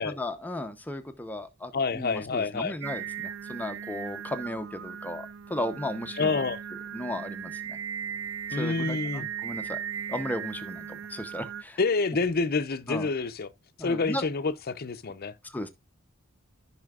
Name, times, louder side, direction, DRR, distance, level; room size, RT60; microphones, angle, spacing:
voice 1, 0.0-6.4 6.9-7.8 8.5-9.8 10.1-11.8 12.9-13.1 13.8-14.2 15.4-15.7, left 1 dB, 10° left, 0.8 m, -35 dB
voice 2, 1.7-2.8 6.2-6.6 8.5-9.3 11.8-13.5 13.8-15.3, left 4 dB, 50° left, 0.7 m, -28 dB
Singing, 2.8-11.6, right 8 dB, 65° right, 0.4 m, -37 dB
14.0 x 5.7 x 2.4 m
head